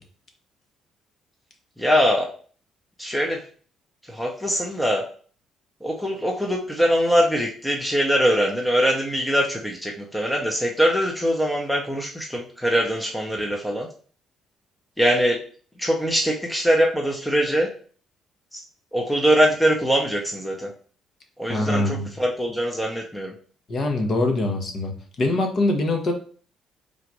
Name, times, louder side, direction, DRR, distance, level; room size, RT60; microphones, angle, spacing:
voice 1, 1.8-2.3 3.0-3.4 4.1-5.0 5.8-13.9 15.0-15.4 15.8-17.7 18.5-18.6 18.9-20.7 21.4-23.3, equal, 5° left, 0 dB, 0.8 m, -22 dB
voice 2, 21.5-22.1 23.7-24.9 25.2-26.1, left 2 dB, 50° left, 4 dB, 1.1 m, -23 dB
3.9 x 2.4 x 4.6 m, 0.43 s
supercardioid pair, 75°, 0 cm